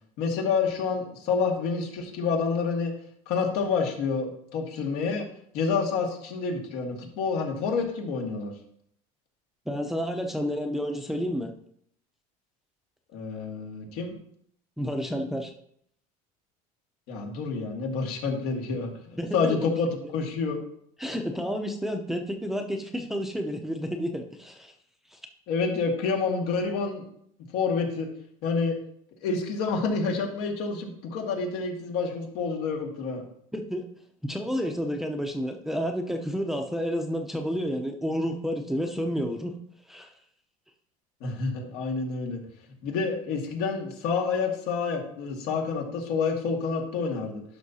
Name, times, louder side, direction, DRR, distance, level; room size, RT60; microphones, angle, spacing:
voice 1, 0.2-2.9 3.3-5.3 5.5-8.5 13.1-14.1 17.1-20.6 25.5-27.0 27.5-28.1 28.4-28.8 29.2-33.2 41.2-42.4 42.8-47.4, left 4 dB, 70° left, 2 dB, 2.0 m, -28 dB
voice 2, 9.7-11.5 14.8-15.5 19.2-19.7 21.0-24.7 25.1-25.2 33.5-33.8 34.3-39.5 39.9-40.1, equal, ahead, 3 dB, 0.7 m, -30 dB
11.0 x 5.8 x 2.8 m, 0.68 s
supercardioid pair, 125°, 17 cm